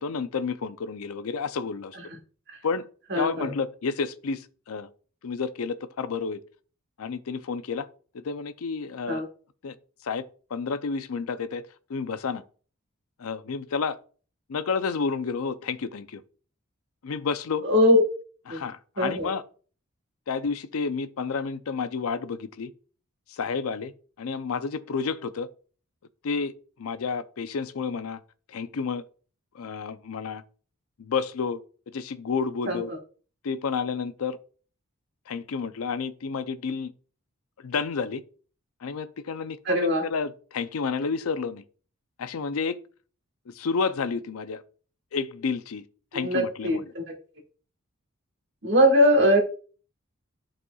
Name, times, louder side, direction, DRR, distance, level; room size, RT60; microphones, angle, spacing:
voice 1, 0.0-2.0 2.6-2.9 3.2-4.9 5.2-6.4 7.0-7.9 8.1-9.2 9.6-9.8 10.0-10.2 10.5-12.4 13.2-14.0 14.5-16.2 17.0-17.7 18.5-19.4 20.3-22.7 23.3-23.9 24.2-25.5 26.2-26.5 26.8-28.2 28.5-29.0 29.5-30.4 31.0-31.6 31.9-32.9 33.4-34.4 35.3-36.9 37.6-38.2 38.8-41.6 42.2-42.8 43.5-44.6 45.1-45.8 46.1-46.9, left 5 dB, 80° left, 0.5 m, -30 dB
voice 2, 3.1-3.5 9.1-9.3 17.6-18.0 18.5-18.6 19.0-19.3 32.7-32.8 39.7-40.0 46.1-47.0 48.6-49.4, equal, 55° right, 1.4 m, -21 dB
11.0 x 4.3 x 2.3 m
head